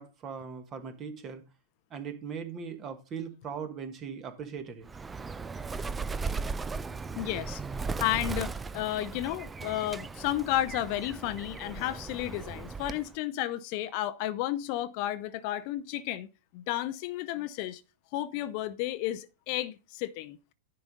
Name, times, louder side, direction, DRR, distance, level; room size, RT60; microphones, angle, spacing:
voice 1, 0.0-1.4 1.9-4.9, right 6 dB, 30° right, 1.5 m, -39 dB
Bird, 4.9-13.1, right 4 dB, 15° right, 0.4 m, -37 dB
voice 2, 7.2-7.6 8.0-16.3 16.5-17.8 18.1-20.4, left 14 dB, 45° left, 0.6 m, -32 dB
10.5 x 4.0 x 5.2 m
figure-of-eight pair, 105°, 0 cm